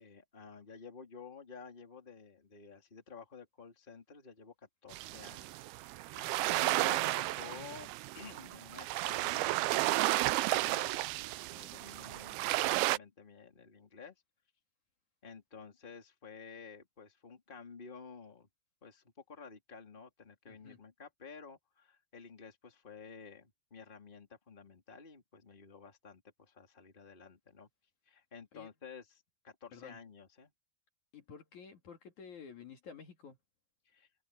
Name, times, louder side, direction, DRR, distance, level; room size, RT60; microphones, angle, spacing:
voice 1, 0.0-5.6 5.9-14.1 15.2-18.5 18.8-27.7 28.0-30.5 33.8-34.1, left 5 dB, 15° left, 3.0 m, -52 dB
sound 1, 4.9-13.0, right 18 dB, 90° right, 2.5 m, -33 dB
voice 2, 6.2-6.6 20.5-20.8 28.5-28.7 29.7-30.0 31.1-33.4, left 6 dB, 55° left, 3.5 m, -51 dB
omnidirectional pair, 4.3 m